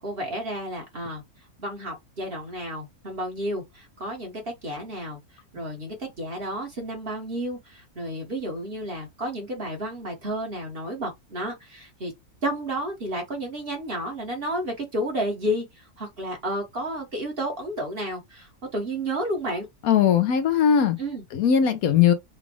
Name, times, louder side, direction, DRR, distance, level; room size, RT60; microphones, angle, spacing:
voice 1, 0.0-1.2 1.6-5.2 5.5-12.1 12.4-19.7 21.0-21.2, right 1 dB, 40° right, 1.5 m, -31 dB
voice 2, 19.8-21.0 21.3-22.1, left 8 dB, 70° left, 1.1 m, -19 dB
5.0 x 2.4 x 3.0 m
omnidirectional pair, 1.6 m